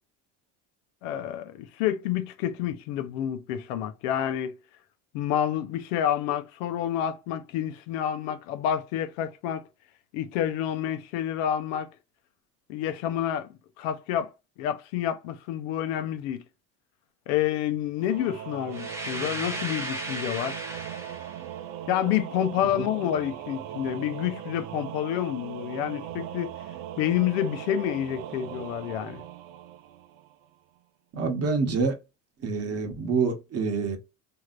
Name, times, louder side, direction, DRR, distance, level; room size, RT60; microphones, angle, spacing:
voice 1, 1.0-4.5 5.1-9.6 10.1-11.9 12.7-13.5 13.8-14.3 14.6-16.4 17.3-20.6 21.9-26.5 27.0-29.2, left 10 dB, 85° left, 0.7 m, -28 dB
Singing / Musical instrument, 18.0-30.5, right 10 dB, 70° right, 0.6 m, -39 dB
sound 1, 18.7-21.5, right 1 dB, 5° right, 0.8 m, -35 dB
voice 2, 31.1-32.0 32.4-34.0, right 4 dB, 40° right, 1.0 m, -27 dB
3.2 x 2.8 x 2.4 m
supercardioid pair, 95°, 36 cm